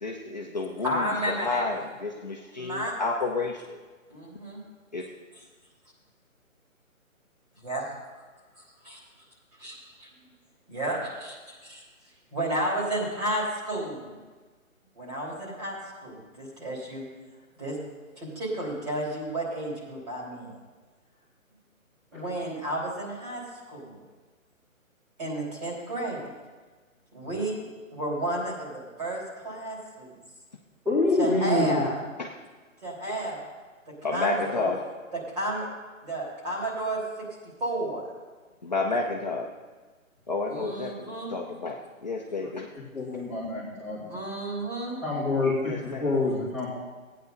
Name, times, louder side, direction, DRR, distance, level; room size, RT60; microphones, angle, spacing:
voice 1, 0.0-3.8 4.9-5.0 32.2-32.3 34.0-34.8 38.6-39.5 40.3-42.7 45.6-46.1, left 3 dB, 30° left, -1 dB, 0.7 m, -31 dB
voice 2, 0.8-1.6 2.6-2.9 4.1-4.6 7.6-7.9 8.6-9.0 9.6-10.1 10.7-11.3 11.7-11.8 12.3-14.2 14.9-17.0 17.6-17.8 18.2-20.6 22.1-23.4 23.7-24.0 25.2-26.3 27.1-30.1 31.2-32.0 32.8-33.4 34.1-34.7 35.1-35.7 36.0-37.0 37.6-38.1 40.5-41.3 44.1-45.0, right 1 dB, 30° right, -4 dB, 3.3 m, -32 dB
voice 3, 30.9-31.8 42.4-42.5 42.9-44.2 45.0-45.7 46.0-46.7, left 2 dB, 5° right, -11 dB, 2.0 m, -26 dB
15.0 x 9.4 x 3.9 m, 1.3 s
hypercardioid pair, 170°, 42 cm